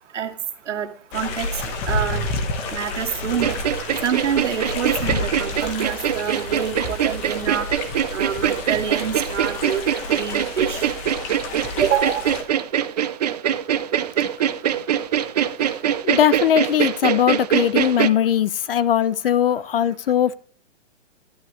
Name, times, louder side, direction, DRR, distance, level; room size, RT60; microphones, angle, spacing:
voice 1, 0.7-1.5 1.9-2.3 2.7-3.5 4.0-7.7 8.1-9.8 10.1-10.9 11.8-12.3, right 8 dB, 75° right, 2.3 m, -26 dB
sound 1, 1.1-12.4, left 2 dB, 20° left, 1.0 m, -30 dB
sound 2, 3.4-18.1, right 10 dB, 35° right, 0.5 m, -23 dB
voice 2, 16.0-20.3, left 10 dB, 50° left, 0.5 m, -20 dB
11.5 x 10.5 x 3.1 m
hypercardioid pair, 160°, 36 cm